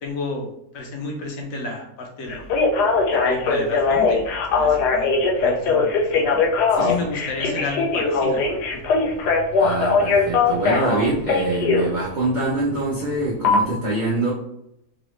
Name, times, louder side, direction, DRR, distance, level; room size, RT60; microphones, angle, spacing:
voice 1, 0.0-2.5 3.1-4.2 4.5-5.1 5.4-6.4 6.8-8.8, left 3 dB, 65° left, 0 dB, 1.0 m, -32 dB
Telephone, 2.3-11.9 13.4-13.6, left 4 dB, 85° left, 1.2 m, -20 dB
voice 2, 9.6-14.3, right 2 dB, 75° right, -5 dB, 0.4 m, -24 dB
3.8 x 2.0 x 3.0 m, 0.80 s
omnidirectional pair, 1.7 m